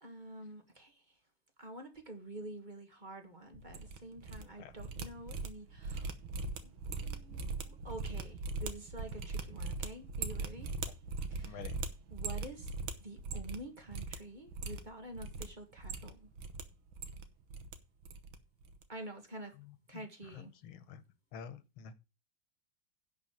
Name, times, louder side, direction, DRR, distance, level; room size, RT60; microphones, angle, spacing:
voice 1, 0.0-1.0 1.6-6.1 6.6-10.7 11.3-11.7 12.1-12.7 13.0-16.3 18.9-19.5 19.9-20.5, right 1 dB, 25° right, 1.6 m, -48 dB
sound 1, 3.5-4.4 4.7-13.6 13.9-14.2 14.5-15.4 15.8-16.6 16.9-17.7 18.0-18.4 18.6-18.8, right 4 dB, 90° right, 1.9 m, -40 dB
voice 2, 11.4-11.7 19.9-20.0 20.6-21.0 21.3-21.9, left 6 dB, 85° left, 1.9 m, -47 dB
10.5 x 4.7 x 7.4 m
omnidirectional pair, 2.2 m